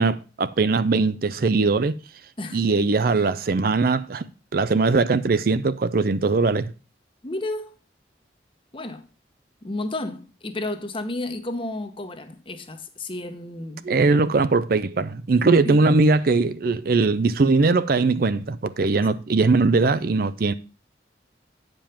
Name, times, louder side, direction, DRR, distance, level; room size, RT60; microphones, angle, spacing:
voice 1, 0.0-2.0 2.5-4.2 4.5-6.7 13.8-20.5, right 3 dB, 55° right, 0.5 m, -20 dB
voice 2, 7.2-7.7 8.7-9.0 9.6-13.8 15.6-15.9, left 2 dB, 30° left, 0.9 m, -32 dB
8.9 x 5.3 x 5.7 m
head